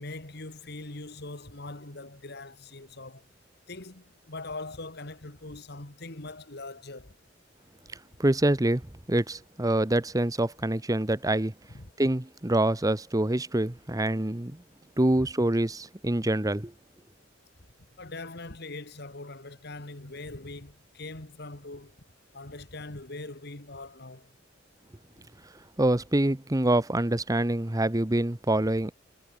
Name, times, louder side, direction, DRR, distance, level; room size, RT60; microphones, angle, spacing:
voice 1, 0.0-3.3 3.7-7.1 11.7-11.9 18.0-21.9 22.3-24.3, left 2 dB, 60° left, 2.4 m, -41 dB
voice 2, 8.2-8.8 9.1-11.5 12.0-14.6 15.0-16.7 25.8-28.9, right 1 dB, 20° right, 1.0 m, -25 dB
head